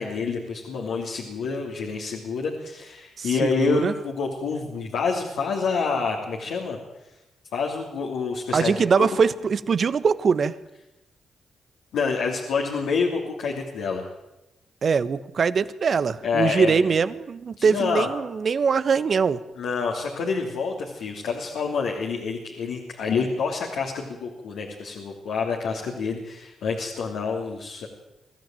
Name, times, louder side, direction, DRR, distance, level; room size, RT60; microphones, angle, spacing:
voice 1, 0.0-6.8 7.5-9.1 11.9-14.0 16.2-16.9 17.6-18.1 19.6-27.9, left 5 dB, 75° left, 0 dB, 3.0 m, -27 dB
voice 2, 3.2-3.9 8.5-10.5 14.8-19.4, right 5 dB, 60° right, 14 dB, 1.2 m, -22 dB
24.0 x 14.5 x 9.1 m, 0.98 s
hypercardioid pair, 40°, 0 cm